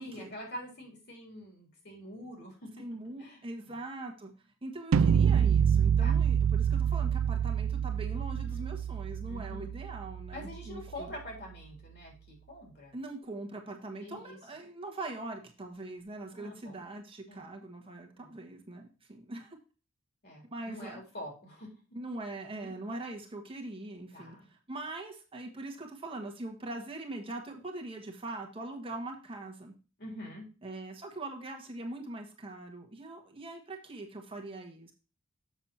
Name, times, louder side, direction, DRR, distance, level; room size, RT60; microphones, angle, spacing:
voice 1, 0.0-2.7 3.2-3.7 6.0-6.1 8.3-8.7 9.3-9.7 10.3-13.0 14.0-14.4 16.3-16.8 17.3-17.5 17.9-18.3 20.2-21.7 22.6-22.7 24.1-24.5 30.0-30.5, left 1 dB, 50° left, 0 dB, 3.7 m, -45 dB
voice 2, 2.8-4.3 4.6-11.1 12.9-19.6 20.5-21.0 21.9-29.7 30.6-34.9, right 2 dB, 25° right, 1 dB, 1.3 m, -42 dB
sound 1, 4.9-10.9, right 8 dB, 70° right, 0.3 m, -27 dB
7.3 x 6.2 x 4.2 m, 0.33 s
head